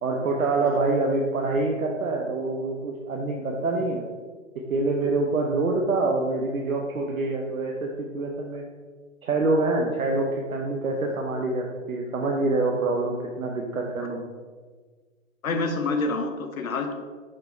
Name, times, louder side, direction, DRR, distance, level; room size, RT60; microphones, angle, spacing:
voice 1, 0.0-4.0 4.7-8.7 9.2-14.2, right 2 dB, 90° right, 0 dB, 0.8 m, -26 dB
voice 2, 15.4-16.9, left 3 dB, 85° left, 6 dB, 0.8 m, -27 dB
6.6 x 3.6 x 4.3 m, 1.5 s
hypercardioid pair, 120°, 40 cm